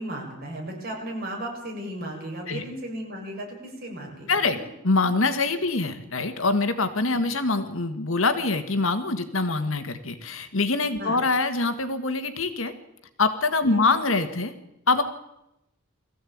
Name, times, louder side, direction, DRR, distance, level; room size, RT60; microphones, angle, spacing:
voice 1, 0.0-4.7 11.0-11.2 13.6-13.8, right 1 dB, 45° right, 0 dB, 6.7 m, -35 dB
voice 2, 4.3-4.6 4.8-12.7 13.2-14.5 14.9-15.0, left 3 dB, 75° left, 9 dB, 1.9 m, -24 dB
21.5 x 15.0 x 8.7 m, 0.87 s
head